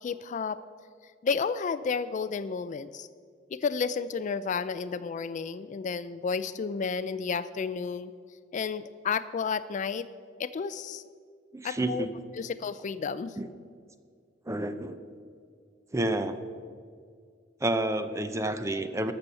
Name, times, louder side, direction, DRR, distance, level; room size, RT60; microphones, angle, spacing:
voice 1, 0.0-0.6 1.2-3.1 3.5-8.1 8.5-10.1 10.4-11.0 11.6-12.1 12.4-13.4, left 5 dB, 40° left, 15 dB, 0.3 m, -31 dB
voice 2, 11.5-12.1 13.4-13.5 14.5-15.0 15.9-16.4 17.6-19.1, right 1 dB, 15° right, 10 dB, 0.6 m, -29 dB
13.0 x 6.9 x 6.8 m, 2.1 s
head